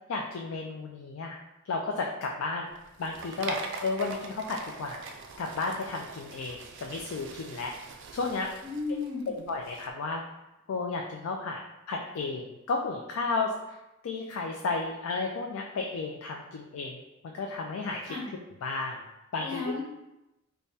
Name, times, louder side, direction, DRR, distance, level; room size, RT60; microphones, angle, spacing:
voice 1, 0.1-1.4 1.6-2.7 3.0-5.1 5.4-7.7 8.1-8.5 9.5-10.2 10.7-11.6 11.9-13.8 14.0-18.2 18.6-19.0 19.3-19.7, left 3 dB, 85° left, 1 dB, 0.4 m, -33 dB
sound 1, 2.7-9.9, right 4 dB, 60° right, 0.4 m, -43 dB
voice 2, 8.6-9.3 18.0-18.3 19.4-19.8, left 3 dB, 20° right, -9 dB, 1.3 m, -34 dB
3.4 x 2.1 x 4.0 m, 0.94 s
head